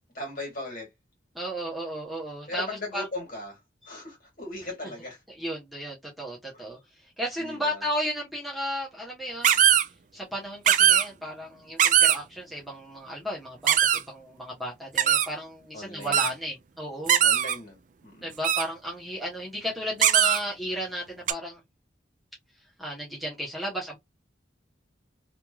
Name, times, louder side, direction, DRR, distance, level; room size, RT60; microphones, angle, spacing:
voice 1, 0.1-0.9 2.5-3.6 3.9-5.2 6.5-6.6 7.4-7.8 15.7-16.3 17.2-18.3, left 2 dB, 50° left, 2.0 m, -38 dB
voice 2, 1.3-3.1 3.8-4.0 5.4-17.2 18.2-21.6 22.8-24.0, equal, ahead, 1.0 m, -34 dB
sound 1, 9.4-9.8 10.7-11.0 11.8-12.2 13.7-14.0 15.0-15.3 16.1-16.3 17.1-17.6 18.4-18.6 20.0-20.4 21.3-21.4, right 10 dB, 45° right, 0.4 m, -20 dB
3.2 x 3.0 x 2.3 m
head